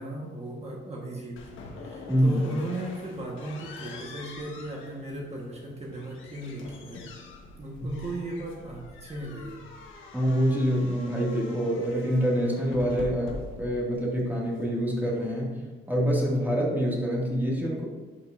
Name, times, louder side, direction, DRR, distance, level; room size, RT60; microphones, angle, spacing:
voice 1, 0.0-1.4 1.7-7.1 7.6-9.6, right 1 dB, 30° right, -2 dB, 1.4 m, -36 dB
sound 1, 1.4-15.4, left 3 dB, 80° left, 1.3 m, -45 dB
voice 2, 2.1-2.4 10.1-13.3 13.6-15.6 15.9-17.9, equal, 10° right, -5 dB, 2.1 m, -26 dB
11.5 x 5.4 x 2.6 m, 1.4 s
cardioid pair, 90°, 20 cm